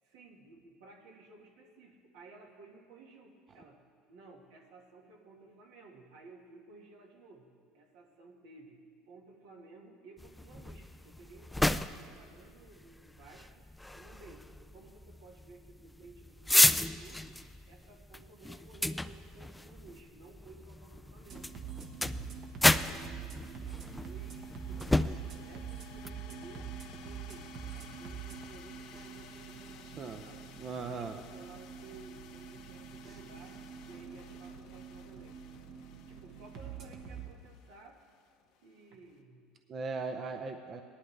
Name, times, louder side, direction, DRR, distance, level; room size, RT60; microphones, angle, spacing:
voice 1, 0.0-3.8 4.1-13.6 13.9-17.4 17.7-21.6 22.7-26.7 26.9-30.4 30.7-35.4 36.1-38.0 38.6-39.6, right 3 dB, 80° right, 1 dB, 1.7 m, -55 dB
sound 1, 10.2-26.1, left 1 dB, 5° left, 0.3 m, -33 dB
sound 2, 20.8-39.1, left 8 dB, 65° left, 0.9 m, -57 dB
sound 3, 21.3-37.3, right 7 dB, 55° right, 1.2 m, -45 dB
voice 2, 30.6-31.2 39.7-40.8, right 4 dB, 40° right, 6 dB, 0.6 m, -38 dB
18.0 x 11.0 x 3.3 m, 2.1 s
supercardioid pair, 95°, 0 cm